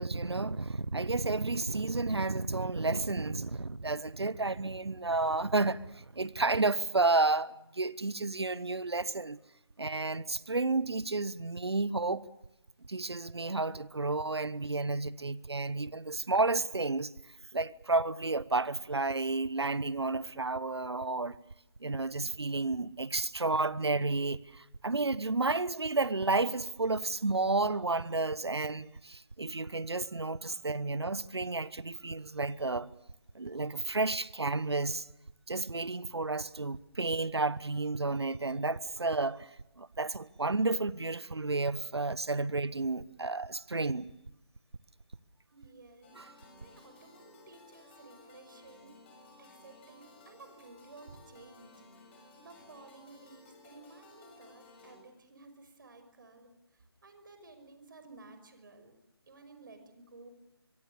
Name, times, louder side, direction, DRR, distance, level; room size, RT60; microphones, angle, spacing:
voice 1, 0.0-9.4 9.8-12.2 12.9-17.1 17.5-21.3 21.8-32.9 33.3-35.1 35.5-39.5 39.8-44.1 46.2-46.3, right 3 dB, 80° right, 1.1 m, -31 dB
voice 2, 45.5-49.0 49.4-58.9 59.3-60.3, right 3 dB, 50° right, 5.7 m, -55 dB
sound 1, 46.0-55.0, left 2 dB, 25° left, 6.9 m, -57 dB
25.0 x 23.5 x 7.0 m
figure-of-eight pair, 150°, 14 cm